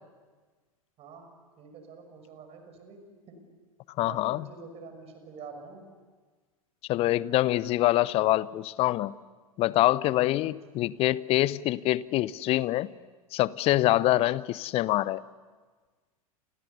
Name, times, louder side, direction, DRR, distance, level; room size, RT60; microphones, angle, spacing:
voice 1, 1.0-1.3 1.6-3.0 3.3-3.4 4.0-5.8 10.1-10.4, right 4 dB, 35° right, 6.4 m, -46 dB
voice 2, 4.0-4.5 6.9-9.1 9.6-12.9 13.3-15.2, left 16 dB, 30° left, 0.7 m, -25 dB
30.0 x 28.5 x 6.9 m
figure-of-eight pair, 90°, 19 cm